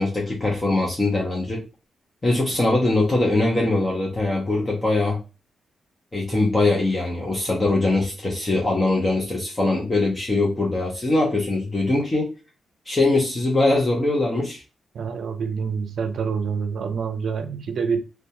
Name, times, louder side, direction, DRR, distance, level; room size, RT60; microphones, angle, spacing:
voice 1, 0.0-1.6 2.2-5.2 6.1-12.3 12.9-14.6, left 2 dB, 20° left, 0.6 m, -22 dB
voice 2, 14.9-18.0, right 6 dB, 65° right, 0.4 m, -26 dB
2.4 x 2.2 x 2.8 m
wide cardioid pair, 155°, 0 cm